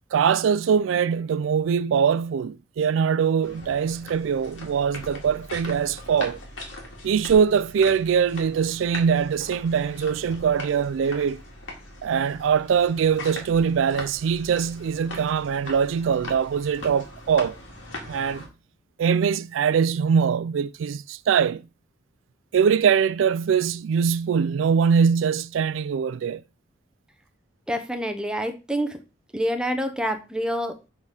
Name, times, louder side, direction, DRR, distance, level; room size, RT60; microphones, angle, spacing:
voice 1, 0.1-6.4 7.0-11.4 12.0-17.6 18.1-18.5 19.0-21.7 22.5-26.4, right 7 dB, 90° right, 0.3 m, -22 dB
sound 1, 3.4-18.5, left 2 dB, 90° left, 2.3 m, -40 dB
voice 2, 27.7-29.0 29.3-30.8, equal, 5° right, 0.7 m, -27 dB
6.6 x 4.2 x 4.8 m
head